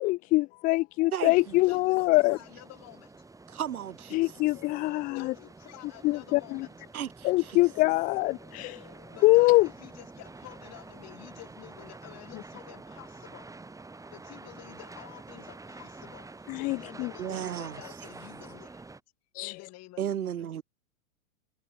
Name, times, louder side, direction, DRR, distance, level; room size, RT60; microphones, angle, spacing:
voice 1, 0.0-2.4 4.1-5.3 6.0-6.7 7.2-8.8 9.2-9.7 16.5-17.1 19.4-19.5, left 21 dB, 20° left, 0.4 m, -24 dB
sound 1, 1.3-19.0, right 3 dB, 10° right, 2.3 m, -48 dB
voice 2, 1.7-3.2 5.1-6.7 9.1-13.5 14.1-18.8 19.4-20.5, left 18 dB, 35° left, 3.0 m, -50 dB
voice 3, 3.5-4.2 6.9-7.6 17.2-17.8 20.0-20.6, right 10 dB, 85° right, 1.3 m, -34 dB
hypercardioid pair, 110°, 42 cm